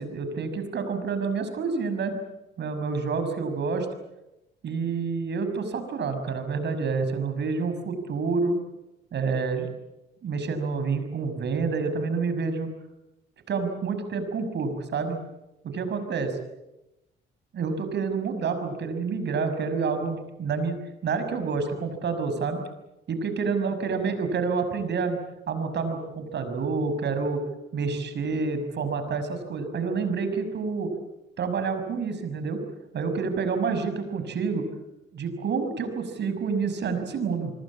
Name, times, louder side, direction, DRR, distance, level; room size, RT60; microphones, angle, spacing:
voice 1, 0.0-2.2 2.6-3.9 4.6-8.6 9.1-9.7 10.2-12.7 13.5-15.2 15.6-16.4 17.5-22.6 23.1-25.2 25.5-27.4 27.7-30.9 31.4-32.6 32.9-34.7 35.1-37.5, right 4 dB, 60° right, 9 dB, 6.0 m, -28 dB
25.5 x 22.5 x 8.5 m, 0.94 s
cardioid pair, 90°, 20 cm